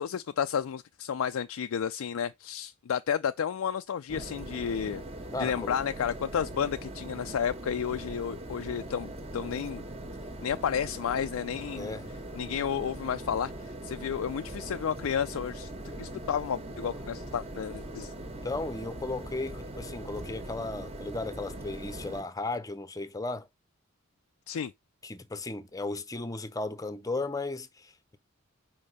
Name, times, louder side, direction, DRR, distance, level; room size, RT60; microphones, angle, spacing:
voice 1, 0.0-5.0 5.4-9.8 10.4-12.0 12.3-18.1 24.5-24.7, left 8 dB, 75° left, 0.4 m, -32 dB
sound 1, 4.1-22.2, right 1 dB, 30° right, 1.5 m, -41 dB
voice 2, 5.3-5.8 11.7-12.1 18.2-23.5 25.0-28.2, left 2 dB, 15° left, 0.7 m, -35 dB
5.3 x 5.2 x 6.6 m
head